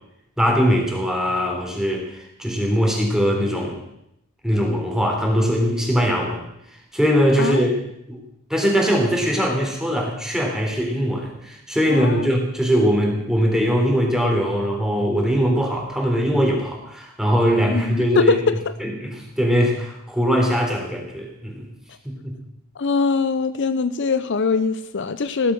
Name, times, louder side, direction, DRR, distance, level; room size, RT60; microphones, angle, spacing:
voice 1, 0.4-3.8 4.4-6.4 6.9-7.7 8.1-8.2 8.5-18.3 18.8-21.6 22.0-22.3, equal, 5° right, 0 dB, 3.8 m, -21 dB
voice 2, 11.9-12.3 17.6-18.7 22.8-25.5, left 4 dB, 60° left, 12 dB, 0.7 m, -22 dB
16.0 x 13.0 x 6.3 m, 0.79 s
head